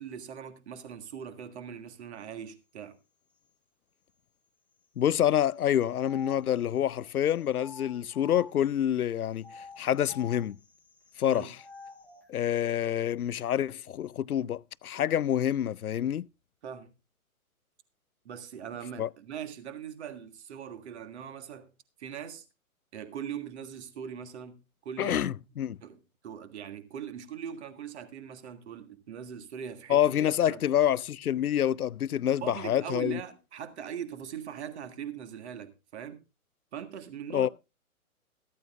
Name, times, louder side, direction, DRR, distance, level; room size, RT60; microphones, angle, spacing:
voice 1, 0.0-3.0 11.2-11.5 16.6-16.9 18.2-21.7 22.0-22.4 22.9-25.5 25.8-26.0 26.2-30.0 30.5-30.6 32.4-36.2 36.7-37.5, right 8 dB, 50° right, 1.7 m, -41 dB
voice 2, 5.0-10.6 11.2-11.6 12.3-16.3 19.0-19.1 25.0-25.8 29.9-33.2 37.3-37.5, left 10 dB, 80° left, 0.5 m, -27 dB
sound 1, 5.4-8.8 9.4-12.3, left 4 dB, 5° left, 1.2 m, -49 dB
14.5 x 14.0 x 2.5 m
figure-of-eight pair, 125°, 44 cm